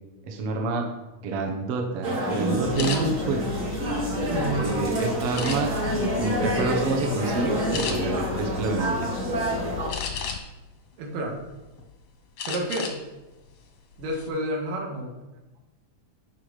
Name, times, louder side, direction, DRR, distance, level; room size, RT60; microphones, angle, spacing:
voice 1, 0.2-0.9 1.2-3.4 4.5-5.7 6.1-9.1, right 3 dB, 60° right, 2 dB, 1.6 m, -28 dB
sound 1, 2.0-9.9, right 1 dB, 35° right, 1.3 m, -28 dB
voice 2, 2.4-2.9 4.3-4.6 11.0-11.4 12.5-12.9 14.0-15.1, right 1 dB, 75° right, 0 dB, 3.1 m, -30 dB
sound 2, 2.6-10.4, left 10 dB, 80° left, 1.8 m, -37 dB
sound 3, 2.8-3.0 3.6-4.6 5.3-5.9 6.5-6.7 7.0-7.2 7.7-8.0 9.9-10.6 11.1-11.8 12.4-13.0 13.3-13.5 13.9-14.3, left 6 dB, 65° left, 1.4 m, -33 dB
10.5 x 5.6 x 4.9 m, 1.1 s
omnidirectional pair, 3.9 m